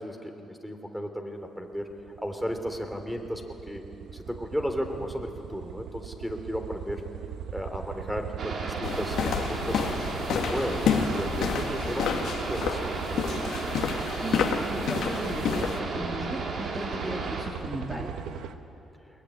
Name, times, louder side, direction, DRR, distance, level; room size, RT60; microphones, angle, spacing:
voice 1, 0.0-1.9 2.2-3.8 4.2-7.0 7.5-10.0 10.3-12.2 12.5-13.3, equal, ahead, 5 dB, 3.3 m, -34 dB
sound 1, 1.7-18.5, right 8 dB, 80° right, 1.2 m, -39 dB
sound 2, 8.4-17.5, right 3 dB, 60° right, 3.8 m, -34 dB
sound 3, 8.8-15.8, left 7 dB, 75° left, 1.8 m, -29 dB
voice 2, 14.0-18.1, right 1 dB, 20° right, 0 dB, 2.9 m, -35 dB
21.5 x 21.5 x 9.9 m, 2.8 s
cardioid pair, 90°, 0 cm